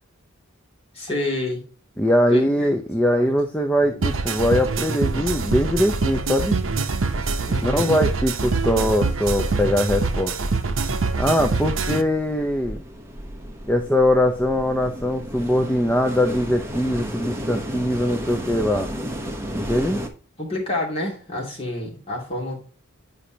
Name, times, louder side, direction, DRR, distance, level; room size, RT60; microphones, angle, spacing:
voice 1, 0.9-1.6 2.3-2.7 3.0-3.3 3.8-4.0 7.4-7.9 20.4-22.6, left 1 dB, 30° left, -3 dB, 2.6 m, -29 dB
voice 2, 2.0-6.6 7.6-10.4 11.2-12.8 13.7-18.9 19.5-20.0, left 1 dB, 5° left, 4 dB, 0.5 m, -21 dB
sound 1, 3.9-4.8 5.1-20.1, equal, 10° right, 0.9 m, -35 dB
sound 2, 4.0-12.0, right 3 dB, 65° right, 0.8 m, -24 dB
8.3 x 5.2 x 2.8 m, 0.38 s
head